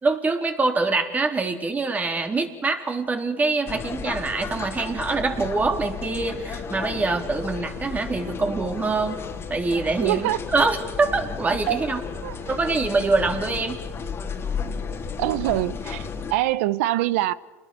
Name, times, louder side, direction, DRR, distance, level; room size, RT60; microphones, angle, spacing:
voice 1, 0.0-9.2 9.5-12.0 12.5-13.8, right 3 dB, 20° right, 3.8 m, -24 dB
sound 1, 3.6-16.3, left 6 dB, 35° left, 3.3 m, -33 dB
voice 2, 10.0-10.4 11.7-11.8 12.2-12.6 15.2-17.3, right 16 dB, 70° right, 0.9 m, -24 dB
29.0 x 20.5 x 7.0 m
hypercardioid pair, 90°, 7 cm